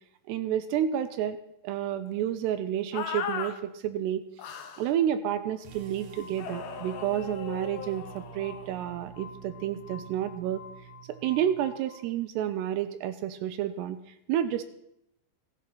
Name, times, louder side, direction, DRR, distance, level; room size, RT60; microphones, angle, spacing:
voice 1, 0.3-1.4 1.6-4.3 4.8-10.7 11.1-14.0 14.3-14.6, right 10 dB, 85° right, 11 dB, 2.5 m, -30 dB
sound 1, 2.9-3.5 4.4-4.9 6.4-8.7, left 7 dB, 75° left, 2.0 m, -37 dB
Glass, 5.2-12.0, left 6 dB, 55° left, 4.1 m, -51 dB
sound 2, 5.6-11.8, right 9 dB, 70° right, 2.1 m, -48 dB
16.5 x 11.5 x 5.9 m, 0.80 s
omnidirectional pair, 5.5 m